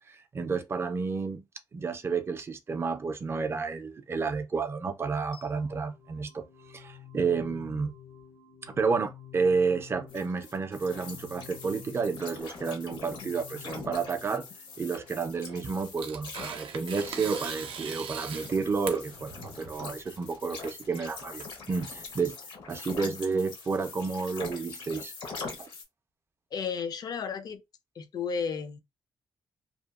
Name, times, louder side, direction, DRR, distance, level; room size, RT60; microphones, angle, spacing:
voice 1, 0.0-1.5 1.7-6.4 6.7-7.9 8.6-14.5 14.8-22.4 22.7-25.1 25.6-25.7, right 4 dB, 30° right, 0.3 m, -31 dB
sound 1, 5.3-16.3, left 9 dB, 90° left, 1.5 m, -51 dB
sound 2, 10.1-25.8, left 4 dB, 65° left, 0.8 m, -43 dB
Tearing, 15.3-22.1, right 7 dB, 80° right, 0.5 m, -40 dB
voice 2, 26.5-27.6 28.0-28.8, left 6 dB, 50° left, 0.4 m, -33 dB
2.7 x 2.2 x 2.3 m
cardioid pair, 140°, 9 cm